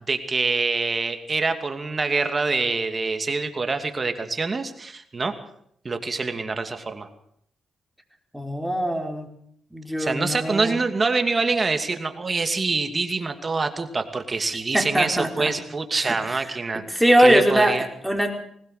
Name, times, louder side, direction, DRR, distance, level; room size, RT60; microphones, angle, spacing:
voice 1, 0.1-5.3 5.8-7.1 10.0-17.9, right 3 dB, 35° right, 7 dB, 2.6 m, -25 dB
voice 2, 8.3-9.3 9.7-10.8 14.7-15.5 15.9-16.2 16.5-18.4, right 1 dB, 5° right, 3 dB, 4.4 m, -22 dB
20.5 x 19.0 x 6.7 m, 0.69 s
cardioid pair, 65°, 0 cm